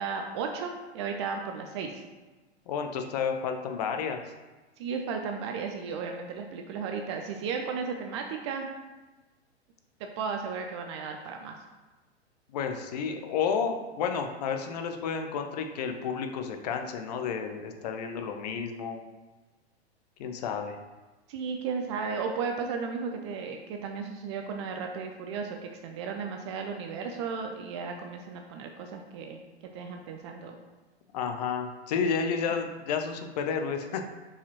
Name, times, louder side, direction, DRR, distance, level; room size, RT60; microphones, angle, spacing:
voice 1, 0.0-2.0 4.8-8.7 10.0-11.6 21.3-29.4 29.7-30.6, right 5 dB, 25° right, 4 dB, 0.5 m, -34 dB
voice 2, 2.7-4.2 12.5-19.0 20.2-20.8 31.1-34.0, left 6 dB, 35° left, 5 dB, 0.7 m, -31 dB
6.7 x 4.9 x 3.0 m, 1.2 s
figure-of-eight pair, 105°, 34 cm